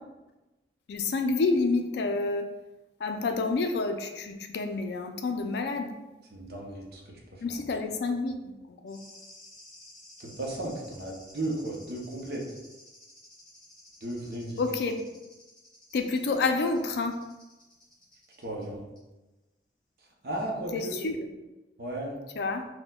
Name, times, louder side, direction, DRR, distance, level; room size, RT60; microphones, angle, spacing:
voice 1, 0.9-2.5 3.0-6.0 7.4-9.0 14.6-15.0 15.9-17.2 20.7-21.3 22.4-22.7, left 3 dB, 65° left, 5 dB, 0.3 m, -29 dB
voice 2, 6.3-7.6 10.2-12.4 14.0-14.6 18.4-18.8 20.2-21.1 21.8-22.2, right 1 dB, 55° right, -1 dB, 0.6 m, -35 dB
sound 1, 8.9-18.6 19.0-19.1, left 1 dB, 5° left, 1.0 m, -53 dB
4.2 x 2.1 x 2.2 m, 1.1 s
head